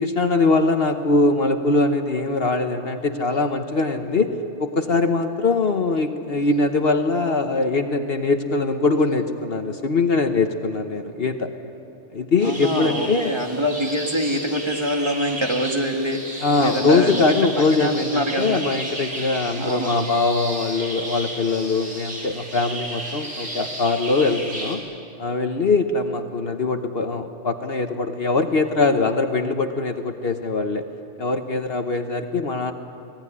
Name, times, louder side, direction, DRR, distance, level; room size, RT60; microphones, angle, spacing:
voice 1, 0.0-4.3 4.6-11.5 12.1-13.3 16.4-24.8 25.2-30.9 31.2-32.7, left 3 dB, 50° left, 6 dB, 1.3 m, -22 dB
voice 2, 12.4-17.4 17.7-18.6 19.6-19.9, equal, 20° right, 2 dB, 1.9 m, -25 dB
sound 1, 12.4-24.7, right 1 dB, 80° right, 5.0 m, -33 dB
24.5 x 18.5 x 10.0 m, 2.8 s
omnidirectional pair, 1.3 m